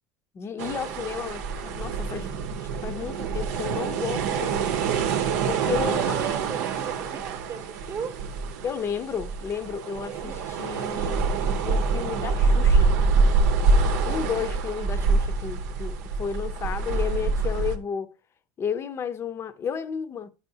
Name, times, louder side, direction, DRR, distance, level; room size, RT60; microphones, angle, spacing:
voice 1, 0.3-2.3 2.6-4.7 5.5-6.2 8.6-11.2 11.7-13.0 14.0-18.1 18.6-20.3, left 7 dB, 30° left, 0.6 m, -32 dB
sound 1, 0.6-17.8, right 4 dB, 85° right, 0.8 m, -25 dB
sound 2, 4.4-12.3 12.6-13.1 13.4-15.2, left 1 dB, 70° left, 0.8 m, -54 dB
voice 2, 5.8-8.2 10.0-10.5, right 6 dB, 30° right, 0.9 m, -37 dB
9.3 x 5.5 x 2.7 m
supercardioid pair, 120°, 9 cm